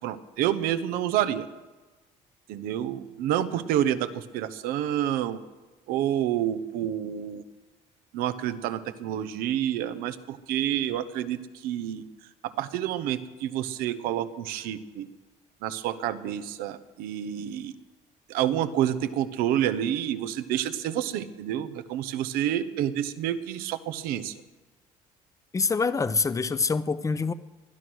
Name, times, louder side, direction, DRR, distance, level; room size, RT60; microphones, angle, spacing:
voice 1, 0.0-1.5 2.5-5.4 5.9-7.4 8.1-12.0 12.4-15.1 15.6-17.7 18.3-24.4, right 11 dB, 85° right, 12 dB, 1.0 m, -28 dB
voice 2, 25.5-27.3, left 4 dB, 20° left, 14 dB, 0.7 m, -25 dB
20.5 x 11.0 x 6.3 m, 1.2 s
cardioid pair, 95°, 15 cm